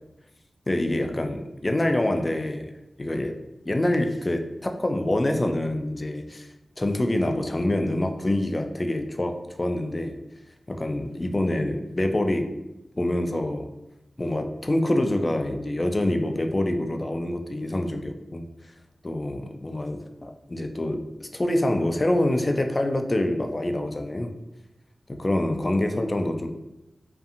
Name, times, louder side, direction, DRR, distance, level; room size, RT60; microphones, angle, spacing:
voice 1, 0.7-2.7 3.0-3.4 3.7-6.5 6.8-10.2 10.7-12.5 13.0-13.7 14.2-18.5 19.0-24.3 25.1-26.5, left 1 dB, 35° left, 5 dB, 0.3 m, -26 dB
2.6 x 2.5 x 2.4 m, 0.94 s
cardioid pair, 45°, 0 cm